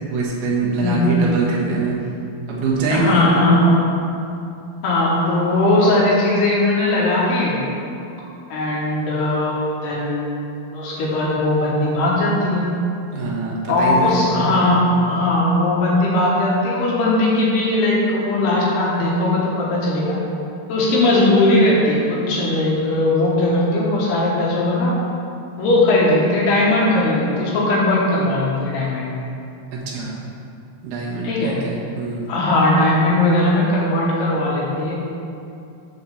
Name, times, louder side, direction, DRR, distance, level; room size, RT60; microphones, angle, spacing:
voice 1, 0.1-2.0 2.5-3.5 13.1-14.8 29.7-30.2 30.8-32.3, right 3 dB, 65° right, -4 dB, 2.9 m, -23 dB
voice 2, 0.8-1.3 2.9-3.8 4.8-7.6 8.5-10.4 10.7-12.7 13.7-20.2 20.7-25.0 25.6-29.2 31.2-31.6 32.3-34.9, left 1 dB, 70° left, -5 dB, 3.1 m, -18 dB
8.3 x 4.5 x 6.9 m, 2.6 s
omnidirectional pair, 5.1 m